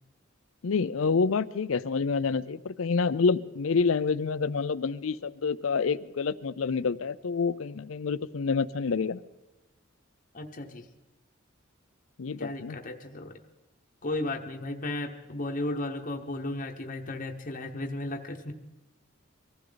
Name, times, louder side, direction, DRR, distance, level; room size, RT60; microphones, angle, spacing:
voice 1, 0.6-9.2 12.2-12.8, left 5 dB, 70° left, 15 dB, 0.5 m, -28 dB
voice 2, 10.3-10.9 12.4-13.3 14.0-18.5, left 2 dB, 40° left, 2 dB, 1.0 m, -34 dB
24.0 x 15.0 x 4.0 m, 1.0 s
head